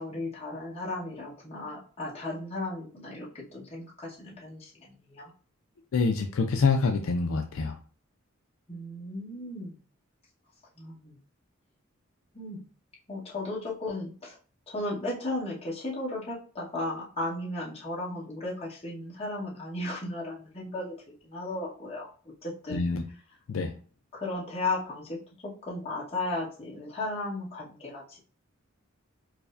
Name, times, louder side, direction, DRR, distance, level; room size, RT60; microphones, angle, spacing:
voice 1, 0.0-5.3 8.7-9.8 10.8-11.2 12.3-12.6 13.1-14.4 14.7-20.9 21.2-22.1 22.4-22.9 24.1-28.2, left 2 dB, 30° left, -5 dB, 1.2 m, -35 dB
voice 2, 5.9-7.8 22.7-23.0 23.5-23.7, left 4 dB, 70° left, 5 dB, 0.4 m, -26 dB
4.7 x 2.1 x 2.5 m, 0.39 s
head